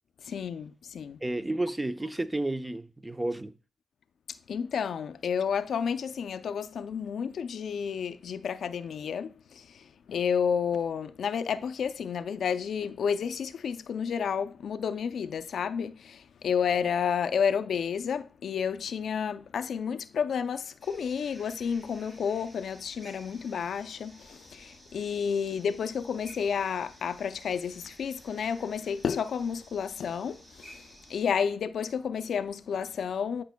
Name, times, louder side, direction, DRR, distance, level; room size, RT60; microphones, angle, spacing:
voice 1, 0.2-1.2 4.5-33.4, left 7 dB, 80° left, 0.4 m, -31 dB
voice 2, 1.2-3.5, right 2 dB, 20° right, 0.7 m, -31 dB
sound 1, 20.8-31.2, equal, 50° right, 3.6 m, -54 dB
10.0 x 5.2 x 2.2 m
supercardioid pair, 45°, 0 cm